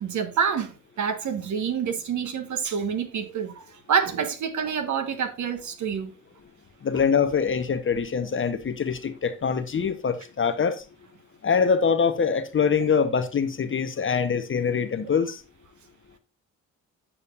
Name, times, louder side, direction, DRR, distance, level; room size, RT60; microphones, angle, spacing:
voice 1, 0.0-6.2, right 7 dB, 45° right, 1.3 m, -27 dB
voice 2, 6.8-10.8 11.4-15.4, left 6 dB, 30° left, 0.9 m, -24 dB
8.6 x 6.8 x 2.5 m
figure-of-eight pair, 45°, 40 cm